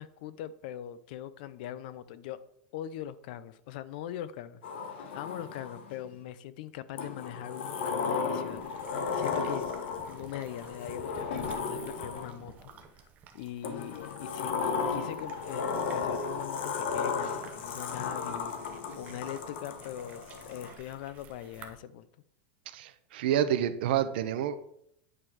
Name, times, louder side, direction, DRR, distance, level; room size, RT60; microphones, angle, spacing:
voice 1, 0.0-2.4 2.7-4.6 4.9-9.7 10.1-12.7 13.3-18.5 18.9-22.1, left 11 dB, 50° left, 16 dB, 0.5 m, -41 dB
Sliding door, 4.6-6.0 7.0-12.5 13.6-20.7, left 5 dB, 70° left, 1.1 m, -34 dB
sound 1, 8.5-21.7, right 7 dB, 25° right, 0.8 m, -53 dB
voice 2, 22.7-24.6, right 10 dB, 60° right, 11 dB, 0.7 m, -28 dB
9.3 x 3.9 x 6.2 m, 0.74 s
supercardioid pair, 175°, 6 cm